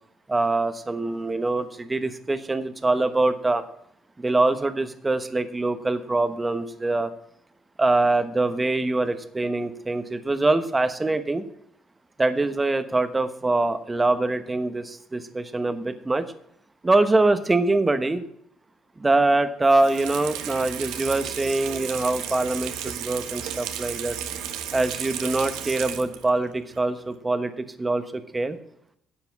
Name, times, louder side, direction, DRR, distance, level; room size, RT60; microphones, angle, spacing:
voice 1, 0.3-3.6 4.2-7.1 7.8-11.4 12.2-16.3 16.8-18.3 19.0-24.2 24.7-28.6, right 2 dB, 20° right, 10 dB, 1.1 m, -24 dB
Water tap faucet / Sink (filling or washing), 19.6-26.4 26.7-26.8, right 9 dB, 85° right, 1.2 m, -34 dB
10.5 x 7.8 x 5.9 m, 0.71 s
cardioid pair, 95°, 0 cm